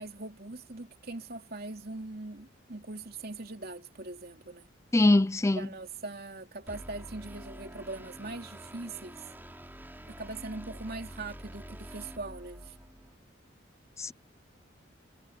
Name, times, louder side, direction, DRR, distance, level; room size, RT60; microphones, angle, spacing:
voice 1, 0.0-4.7 5.5-9.2 10.1-12.7, right 2 dB, 50° right, 3.2 m, -41 dB
voice 2, 4.9-5.7 14.0-14.1, left 2 dB, 15° left, 0.4 m, -23 dB
sound 1, 6.7-13.1, equal, 10° right, 4.6 m, -47 dB
head